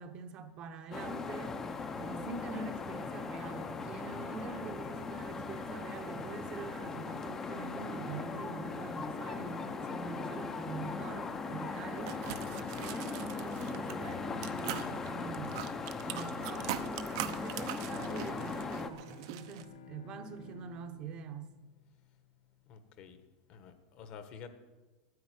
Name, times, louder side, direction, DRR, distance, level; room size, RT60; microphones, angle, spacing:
voice 1, 0.0-1.6 1.9-12.2 12.8-15.6 16.0-21.5, right 5 dB, 30° right, 0.9 m, -45 dB
sound 1, 0.9-18.9, left 4 dB, 15° left, 0.7 m, -39 dB
sound 2, 12.0-14.1 14.4-19.6, right 13 dB, 60° right, 0.8 m, -42 dB
voice 2, 15.9-16.2 22.7-23.2 23.5-24.5, left 6 dB, 35° left, 1.2 m, -50 dB
Bowed string instrument, 17.1-22.6, left 6 dB, 90° left, 0.7 m, -54 dB
9.6 x 9.4 x 9.5 m
supercardioid pair, 165°, 3 cm